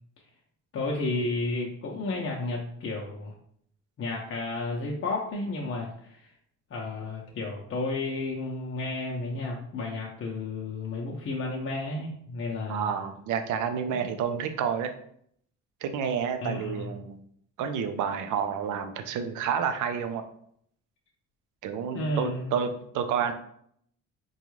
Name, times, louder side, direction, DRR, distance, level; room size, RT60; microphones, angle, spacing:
voice 1, 0.7-3.3 4.0-6.3 6.7-12.9 13.9-14.1 16.4-16.9 21.9-22.6, left 2 dB, 45° left, -1 dB, 0.6 m, -32 dB
voice 2, 12.7-14.9 15.8-17.2 17.6-20.2 21.6-23.3, right 7 dB, 80° right, 8 dB, 0.5 m, -29 dB
3.9 x 2.3 x 3.1 m, 0.67 s
cardioid pair, 90°, 30 cm